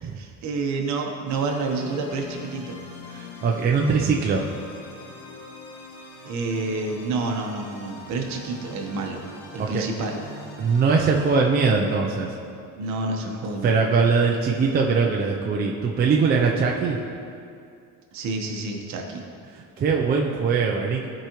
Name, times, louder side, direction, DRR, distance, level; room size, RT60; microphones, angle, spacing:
voice 1, 0.0-2.8 6.2-9.3 9.5-10.2 12.7-13.8 18.1-19.2, right 3 dB, 55° right, 2 dB, 1.1 m, -29 dB
sound 1, 1.3-11.3, left 3 dB, 80° left, 2.1 m, -43 dB
voice 2, 3.1-4.4 9.6-9.8 10.6-12.3 13.2-13.4 13.6-17.0 19.5-21.1, right 5 dB, 30° right, -1 dB, 0.5 m, -22 dB
14.5 x 5.0 x 3.0 m, 2.4 s
cardioid pair, 155°, 33 cm